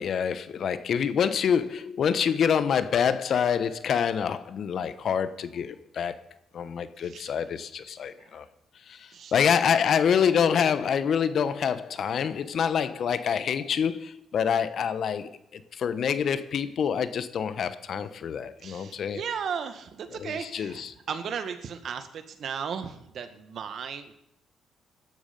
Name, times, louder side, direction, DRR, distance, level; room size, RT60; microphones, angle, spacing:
voice 1, 0.0-6.2 6.5-8.4 8.9-19.2 20.2-20.9, left 7 dB, 60° left, 1.1 m, -26 dB
voice 2, 7.0-7.3 8.2-8.4 9.1-9.3 18.6-24.1, right 7 dB, 60° right, 1.8 m, -36 dB
17.5 x 12.5 x 5.4 m
cardioid pair, 90°, 0 cm